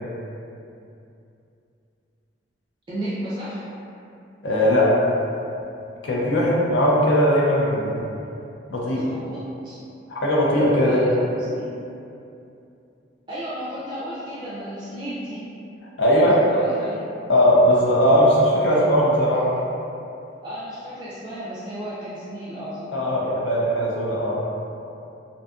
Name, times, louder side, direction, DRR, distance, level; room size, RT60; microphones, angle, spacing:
voice 1, 2.9-3.6 8.9-9.8 10.8-11.7 13.3-15.4 16.0-17.1 18.7-18.8 20.4-23.0, right 1 dB, 25° right, -10 dB, 0.4 m, -33 dB
voice 2, 4.4-5.0 6.0-8.0 8.7-9.1 10.1-11.1 16.0-16.3 17.3-19.6 22.9-24.4, equal, 70° left, -5 dB, 0.5 m, -19 dB
2.6 x 2.4 x 2.4 m, 2.7 s
head